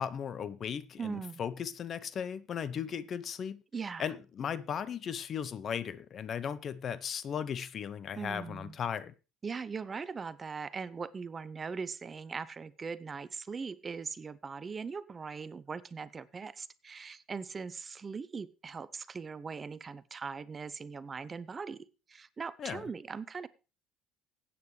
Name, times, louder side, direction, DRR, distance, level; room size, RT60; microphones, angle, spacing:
voice 1, 0.0-3.6 4.0-9.1 22.6-22.8, left 8 dB, 50° left, 0.8 m, -36 dB
voice 2, 1.0-1.4 3.7-4.1 8.2-8.8 9.4-23.5, right 5 dB, 30° right, 0.7 m, -40 dB
16.0 x 8.6 x 3.3 m
supercardioid pair, 80°, 0 cm